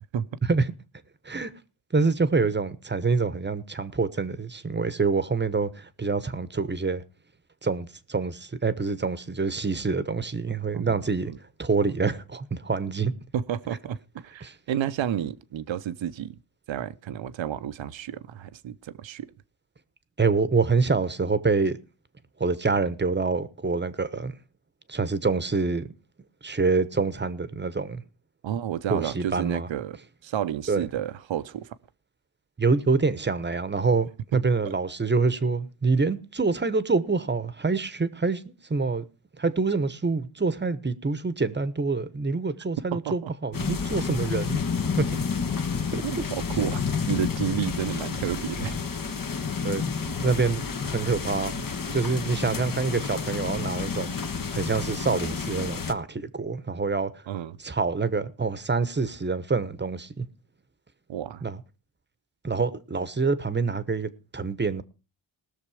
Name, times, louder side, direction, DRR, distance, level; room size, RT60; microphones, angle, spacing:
voice 1, 1.9-7.0 7.6-11.3 11.6-13.1 14.4-14.5 20.2-21.8 22.4-24.3 24.9-25.9 26.4-28.0 28.9-29.7 30.7-30.9 32.6-39.0 39.4-44.6 45.0-45.2 45.9-46.0 49.6-49.9 50.2-51.6 51.9-54.1 54.5-57.1 57.6-60.3 61.4-61.6 62.4-64.8, right 4 dB, 20° right, 1.1 m, -26 dB
voice 2, 10.7-11.4 13.3-14.0 14.2-16.4 16.7-19.3 28.4-30.0 30.2-31.8 34.6-34.8 43.0-43.3 46.0-48.8 57.3-57.6 61.1-61.4, right 10 dB, 65° right, 0.9 m, -31 dB
sound 1, 43.5-55.9, left 5 dB, 45° left, 1.4 m, -30 dB
19.5 x 6.6 x 4.9 m
cardioid pair, 70°, 48 cm